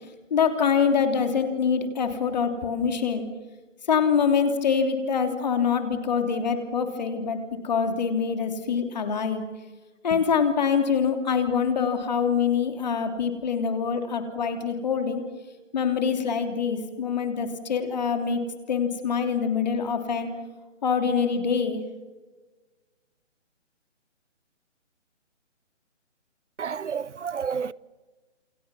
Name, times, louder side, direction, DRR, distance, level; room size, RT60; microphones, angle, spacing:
voice 1, 0.3-3.3 3.9-9.4 10.0-15.2 15.7-18.4 18.7-20.3 20.8-21.8, left 6 dB, 35° left, 3.2 m, -25 dB
voice 2, 26.6-27.7, right 6 dB, 70° right, 0.8 m, -30 dB
29.5 x 28.5 x 6.2 m
hypercardioid pair, 170°, 37 cm